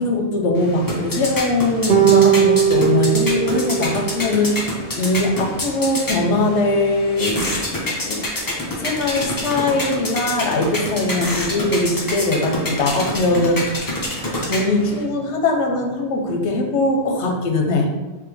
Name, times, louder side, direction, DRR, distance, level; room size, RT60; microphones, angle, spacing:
voice 1, 0.0-7.4 8.0-8.2 8.8-13.6 14.4-17.9, left 2 dB, 80° left, 2 dB, 0.9 m, -21 dB
sound 1, 0.6-15.0, left 1 dB, 25° left, 0.6 m, -27 dB
sound 2, 1.9-4.4, right 8 dB, 60° right, 0.6 m, -18 dB
3.4 x 3.2 x 3.4 m, 1.2 s
omnidirectional pair, 1.2 m